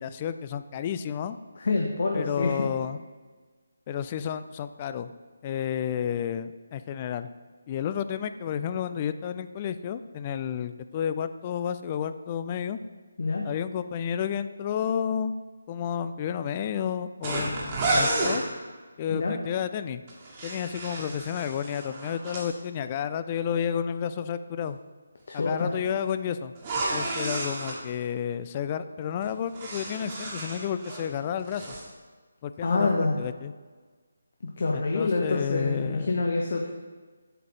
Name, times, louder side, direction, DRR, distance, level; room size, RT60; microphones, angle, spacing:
voice 1, 0.0-1.4 2.1-3.0 3.9-5.1 5.4-7.3 7.7-12.8 13.4-15.3 15.7-18.4 19.0-20.0 20.4-24.8 25.3-26.5 26.9-31.8 32.4-32.9 33.2-33.5 34.7-36.2, left 8 dB, 30° left, 12 dB, 0.3 m, -31 dB
voice 2, 1.6-2.5 13.2-13.4 19.1-19.3 25.3-25.7 32.6-33.2 34.6-36.7, left 3 dB, 55° left, 1 dB, 0.8 m, -26 dB
sound 1, 17.2-18.4 20.1-22.5 26.6-27.8 29.2-31.1 31.4-31.8, right 2 dB, 30° right, 1.5 m, -31 dB
7.9 x 4.8 x 3.8 m, 1.4 s
figure-of-eight pair, 155°, 0 cm